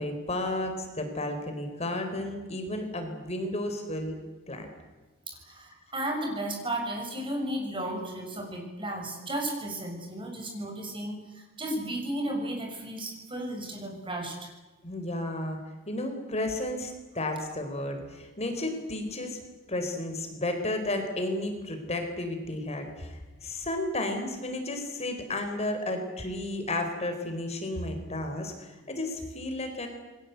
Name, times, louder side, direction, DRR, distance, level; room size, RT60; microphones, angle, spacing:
voice 1, 0.0-4.1 4.5-4.7 14.8-15.6 15.9-19.4 19.7-29.9, left 1 dB, 35° left, 5 dB, 4.1 m, -32 dB
voice 2, 5.3-14.5, right 1 dB, 25° right, 2 dB, 6.7 m, -34 dB
28.5 x 22.0 x 8.1 m, 1.2 s
head